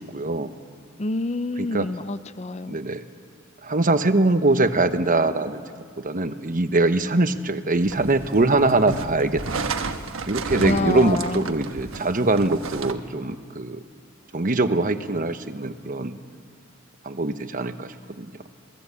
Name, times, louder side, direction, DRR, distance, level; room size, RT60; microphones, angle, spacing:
voice 1, 0.1-0.5 1.6-1.9 2.7-3.0 3.6-5.6 6.0-9.7 10.3-13.8 14.3-16.2 17.0-18.3, right 2 dB, 40° right, 9 dB, 1.1 m, -22 dB
voice 2, 1.0-2.8 10.6-11.5, left 2 dB, 35° left, 15 dB, 0.6 m, -27 dB
sound 1, 7.8-12.9, right 4 dB, 75° right, 1.3 m, -32 dB
27.5 x 18.0 x 8.4 m, 2.1 s
head